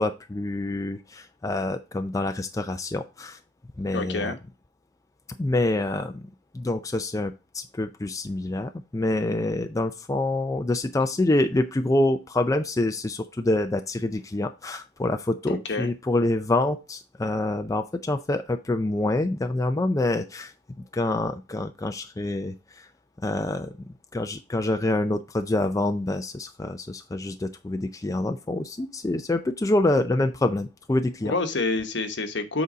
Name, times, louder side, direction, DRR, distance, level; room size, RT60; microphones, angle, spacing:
voice 1, 0.0-3.4 3.8-4.3 5.4-6.3 6.5-20.5 20.9-22.9 23.2-23.7 24.1-31.3, left 2 dB, 20° left, 7 dB, 0.4 m, -26 dB
voice 2, 3.9-4.4 15.5-15.9 31.2-32.6, left 3 dB, 65° left, 7 dB, 1.2 m, -28 dB
7.8 x 4.0 x 5.0 m, 0.28 s
head